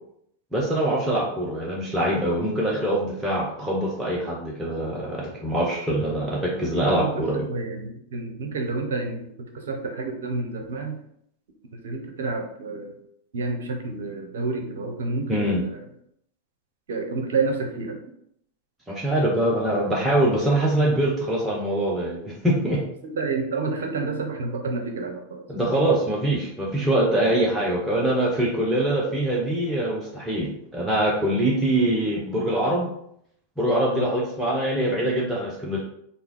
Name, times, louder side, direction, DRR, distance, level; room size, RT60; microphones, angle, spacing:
voice 1, 0.5-7.5 15.3-15.6 18.9-22.8 25.5-32.9 33.6-35.8, right 1 dB, 10° right, -4 dB, 0.7 m, -23 dB
voice 2, 6.8-11.0 11.8-13.0 13.3-15.8 16.9-18.0 23.0-25.4 26.8-26.9 33.9-34.1, right 3 dB, 60° right, 4 dB, 0.7 m, -29 dB
4.3 x 2.0 x 3.7 m, 0.72 s
figure-of-eight pair, 90°, 0 cm